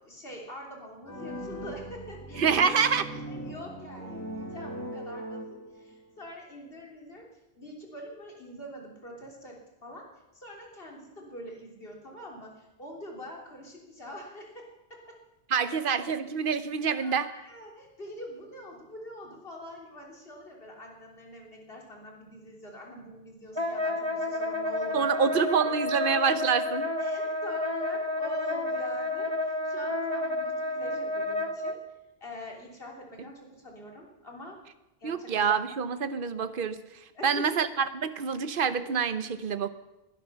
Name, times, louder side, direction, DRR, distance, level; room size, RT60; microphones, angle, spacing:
voice 1, 0.0-2.7 3.3-7.2 7.6-10.1 10.3-15.2 17.0-25.1 27.0-31.8 32.2-34.6 35.0-35.3 37.1-37.5, left 1 dB, 65° left, -1 dB, 3.7 m, -45 dB
sound 1, 1.0-6.0, equal, 15° left, 1.7 m, -39 dB
voice 2, 2.4-3.0 15.5-17.3 24.9-26.9 35.0-36.8 37.2-37.7 37.9-39.7, right 6 dB, 55° right, 11 dB, 1.1 m, -26 dB
Wind instrument woodwind instrument, 23.6-31.8, left 2 dB, 25° right, 1.2 m, -30 dB
21.0 x 11.5 x 5.8 m, 0.96 s
omnidirectional pair, 1.1 m